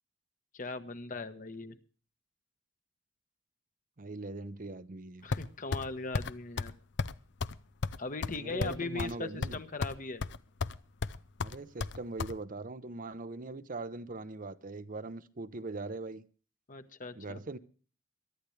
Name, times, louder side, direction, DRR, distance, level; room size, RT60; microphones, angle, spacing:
voice 1, 0.5-1.8 5.2-6.7 8.0-10.3 16.7-17.4, left 3 dB, 45° left, 1.3 m, -39 dB
voice 2, 4.0-5.2 8.4-9.6 11.4-16.2 17.2-17.6, right 3 dB, 45° right, 0.8 m, -41 dB
sound 1, 5.3-5.9 6.1-6.3 6.6-6.7 7.0-7.1 7.4-7.5 7.8-9.1 9.4-10.0 10.2-10.8 11.0-12.3, left 4 dB, 65° left, 0.6 m, -33 dB
22.5 x 12.0 x 3.3 m
head